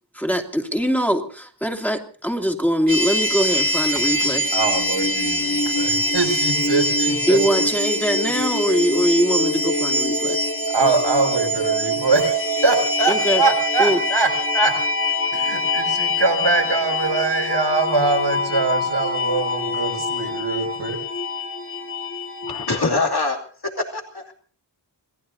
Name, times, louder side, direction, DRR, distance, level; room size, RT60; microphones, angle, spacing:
voice 1, 0.1-4.4 7.3-10.4 13.1-13.4 13.8-14.0, equal, 5° left, 2.7 m, -22 dB
sound 1, 2.9-22.8, left 1 dB, 30° left, 2.2 m, -23 dB
voice 2, 4.1-7.4 10.7-14.7 15.1-21.0, right 3 dB, 90° right, 6.8 m, -23 dB
voice 3, 22.5-23.4 23.6-24.3, left 3 dB, 65° left, 2.7 m, -24 dB
27.5 x 18.5 x 2.8 m
wide cardioid pair, 50°, 42 cm